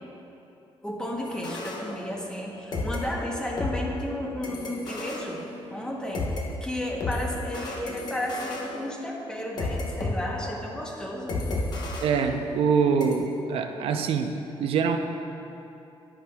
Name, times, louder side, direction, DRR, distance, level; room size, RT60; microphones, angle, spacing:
voice 1, 0.8-5.4 5.7-6.3 6.6-11.4, left 1 dB, 10° left, -2 dB, 0.8 m, -33 dB
sound 1, 1.2-2.5 2.7-6.4 7.0-10.1 10.4-10.7 11.3-12.7 13.0-13.2, left 2 dB, 45° left, 1.0 m, -33 dB
voice 2, 12.0-14.3 14.6-15.0, right 6 dB, 70° right, 5 dB, 0.5 m, -24 dB
10.5 x 10.0 x 2.3 m, 2.8 s
cardioid pair, 180°, 10 cm